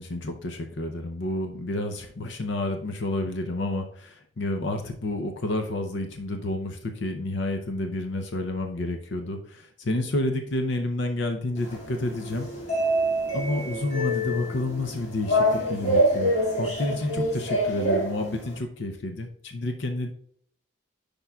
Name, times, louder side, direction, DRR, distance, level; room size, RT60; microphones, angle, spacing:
voice 1, 0.0-12.5 13.3-20.1, left 2 dB, 70° left, 5 dB, 0.7 m, -30 dB
sound 1, 11.6-18.6, equal, 35° left, 2.2 m, -26 dB
10.0 x 5.2 x 2.3 m, 0.64 s
head